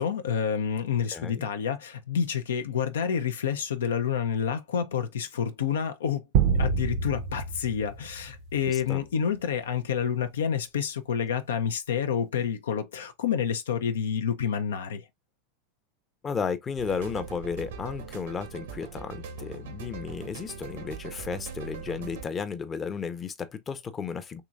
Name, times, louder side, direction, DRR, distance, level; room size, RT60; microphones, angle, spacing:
voice 1, 0.0-6.2 6.6-15.0, left 7 dB, 85° left, 0.5 m, -28 dB
voice 2, 1.1-1.5 8.7-9.0 16.2-24.4, left 6 dB, 25° left, 0.6 m, -34 dB
sound 1, 6.3-8.9, right 6 dB, 60° right, 0.6 m, -27 dB
sound 2, 16.8-22.2, right 5 dB, 80° right, 0.9 m, -41 dB
3.8 x 3.0 x 2.3 m
hypercardioid pair, 100°, 0 cm